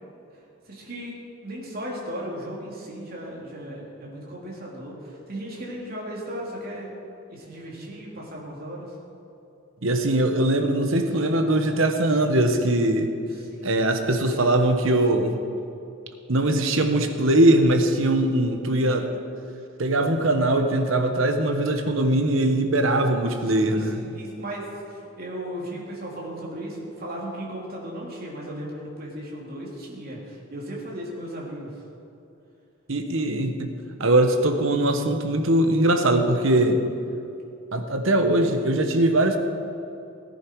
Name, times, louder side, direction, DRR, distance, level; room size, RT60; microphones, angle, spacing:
voice 1, 0.3-6.9 7.3-8.9 13.3-14.2 23.5-31.7, right 1 dB, 45° right, -4 dB, 3.2 m, -36 dB
voice 2, 9.8-13.1 13.6-15.3 16.3-19.1 19.8-24.0 32.9-33.7 34.0-36.8 37.7-39.4, right 1 dB, 65° right, 6 dB, 1.2 m, -21 dB
18.0 x 11.0 x 4.7 m, 2.7 s
head